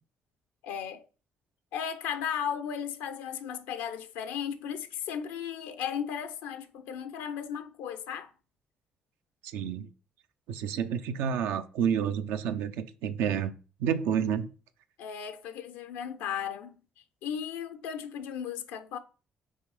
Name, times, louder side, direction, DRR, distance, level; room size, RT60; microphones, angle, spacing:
voice 1, 0.6-1.0 1.7-8.3 15.0-16.7 17.2-19.0, left 8 dB, 90° left, 0.5 m, -35 dB
voice 2, 9.5-9.9 10.5-13.5 13.8-14.5, right 8 dB, 85° right, 0.5 m, -29 dB
5.5 x 3.6 x 4.8 m
supercardioid pair, 60°, 4 cm